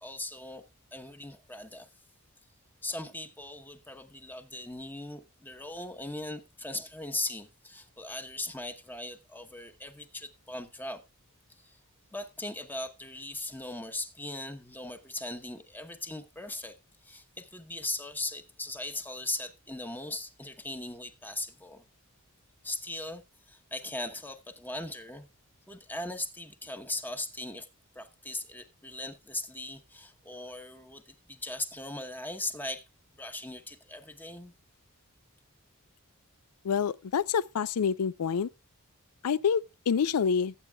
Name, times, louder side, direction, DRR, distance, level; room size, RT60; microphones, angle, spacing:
voice 1, 0.0-0.7 0.9-1.9 2.8-11.0 11.5-11.8 12.1-16.7 17.0-21.8 22.6-25.2 25.7-27.7 27.9-32.9 33.2-34.5, left 2 dB, 10° left, 0.9 m, -39 dB
voice 2, 36.6-38.5 39.2-40.5, left 6 dB, 85° left, 0.4 m, -27 dB
19.5 x 8.3 x 2.3 m
head